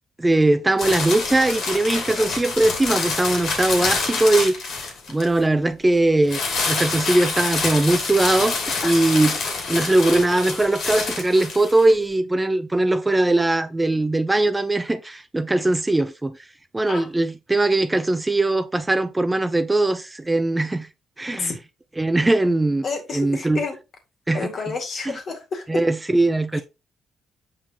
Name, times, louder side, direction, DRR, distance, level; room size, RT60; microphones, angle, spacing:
voice 1, 0.2-4.7 5.1-6.4 6.7-8.6 8.8-9.3 9.7-16.4 16.7-20.9 21.2-21.5 22.0-22.8 23.1-23.6 24.3-24.5 25.7-26.6, right 2 dB, 15° right, 0.6 m, -20 dB
sound 1, 0.8-5.4 6.3-11.9, left 4 dB, 75° left, 2.6 m, -26 dB
voice 2, 22.8-23.8 24.3-25.8 26.5-26.6, left 4 dB, 55° left, 2.1 m, -30 dB
7.0 x 5.2 x 2.9 m
cardioid pair, 90°, 0 cm